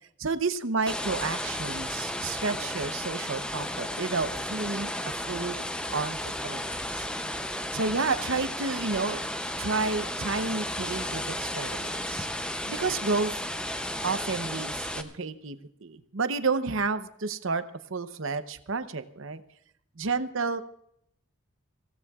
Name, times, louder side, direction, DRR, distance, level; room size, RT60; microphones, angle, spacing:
voice 1, 0.2-4.9 5.3-5.6 5.9-6.2 6.4-7.1 7.7-9.2 9.6-12.3 12.7-13.3 14.0-17.6 17.9-19.4 20.0-20.6, right 4 dB, 65° right, 11 dB, 0.8 m, -30 dB
sound 1, 0.9-15.0, left 1 dB, 5° left, 0.6 m, -33 dB
24.5 x 16.5 x 2.4 m, 0.73 s
head